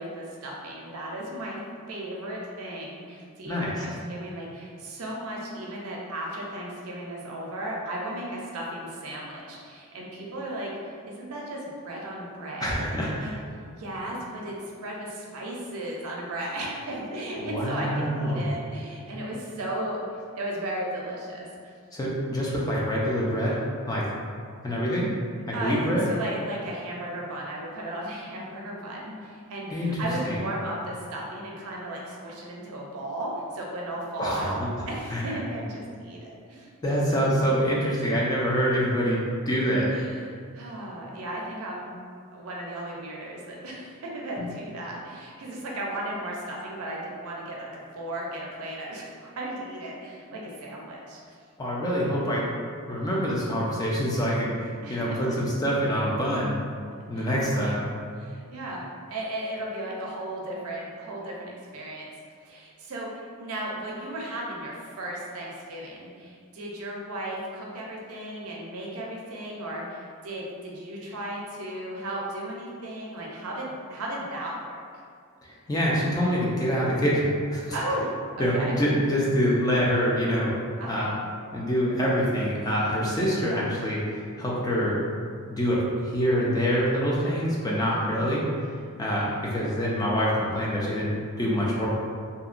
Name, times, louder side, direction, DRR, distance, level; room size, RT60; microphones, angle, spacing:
voice 1, 0.0-1.6 1.9-13.3 13.8-14.6 14.8-21.5 25.5-25.8 26.1-36.7 39.9-41.9 42.3-51.4 54.8-55.2 57.1-57.7 58.2-58.8 59.1-62.1 62.4-74.8 77.7-78.1 78.4-78.8 80.8-81.2 87.8-88.0, right 1 dB, 75° right, -3 dB, 0.5 m, -35 dB
voice 2, 12.6-13.3 17.4-18.5 21.9-23.6 23.9-24.0 24.6-25.1 25.5-26.0 29.7-30.4 34.2-34.7 35.1-35.2 36.8-39.9 44.4-44.5 51.6-52.5 52.9-56.5 57.1-57.8 75.4-77.8 78.4-80.6 80.9-81.1 81.5-85.0 85.5-88.4 89.0-91.9, equal, 15° left, -5 dB, 0.3 m, -25 dB
2.7 x 2.1 x 2.4 m, 2.1 s
head